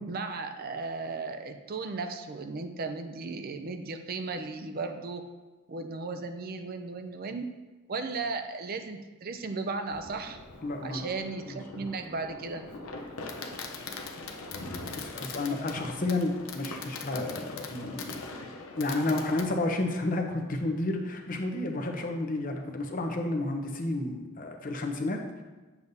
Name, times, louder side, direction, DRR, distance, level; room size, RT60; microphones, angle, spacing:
voice 1, 0.1-5.3 5.7-7.5 7.9-10.4 10.8-12.7, right 3 dB, 45° right, 7 dB, 0.4 m, -35 dB
Fireworks, 9.9-19.5, left 3 dB, 70° left, 0.7 m, -41 dB
voice 2, 10.6-11.1 11.5-11.8 14.5-14.7 15.0-18.1 18.8-25.4, left 2 dB, 40° left, 3 dB, 0.8 m, -31 dB
9.4 x 7.1 x 2.7 m, 1.2 s
head